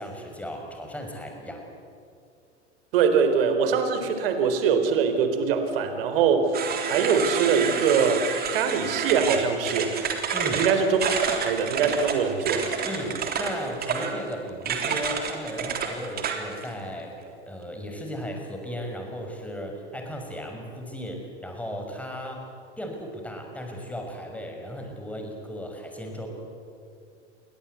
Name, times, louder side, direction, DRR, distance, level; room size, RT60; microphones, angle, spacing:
voice 1, 0.0-1.6 10.3-10.7 12.8-17.1 17.5-22.5 22.8-26.3, equal, 5° left, 2 dB, 5.9 m, -35 dB
voice 2, 2.9-6.5 6.8-10.0 10.5-10.9 11.4-12.7, right 6 dB, 55° right, 8 dB, 4.1 m, -23 dB
sound 1, 6.5-16.7, right 6 dB, 25° right, 3.5 m, -29 dB
28.0 x 23.0 x 8.4 m, 2.3 s
figure-of-eight pair, 90°, 35 cm